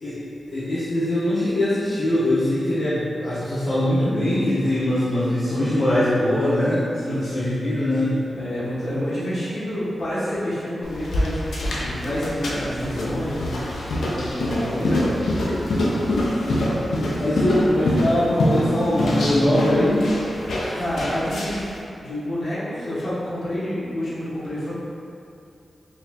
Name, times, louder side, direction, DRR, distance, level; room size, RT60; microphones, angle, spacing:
voice 1, 0.5-8.2 17.1-20.0 20.6-20.7, left 1 dB, 55° left, -12 dB, 0.8 m, -22 dB
voice 2, 7.0-7.6 8.3-15.2 20.7-21.7 22.0-24.7, equal, 75° left, -11 dB, 1.3 m, -28 dB
sound 1, 10.8-21.7, left 1 dB, 90° left, 0.5 m, -25 dB
3.9 x 2.5 x 2.8 m, 2.6 s
wide cardioid pair, 80°, 0 cm